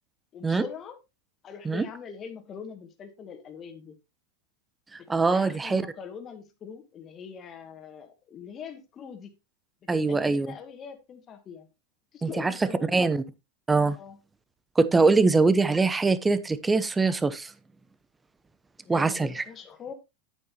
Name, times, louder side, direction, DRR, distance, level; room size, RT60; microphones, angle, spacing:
voice 1, 0.3-1.0 1.4-4.0 5.0-9.4 9.9-11.7 12.1-13.0 14.0-14.2 15.2-15.3 18.8-19.9, left 7 dB, 35° left, 2.1 m, -42 dB
voice 2, 4.9-5.9 9.9-10.5 12.2-12.5 12.9-13.2 13.7-14.0 14.8-17.5 18.9-19.4, right 3 dB, 15° right, 0.9 m, -23 dB
9.7 x 9.1 x 2.9 m
hypercardioid pair, 100°, 0 cm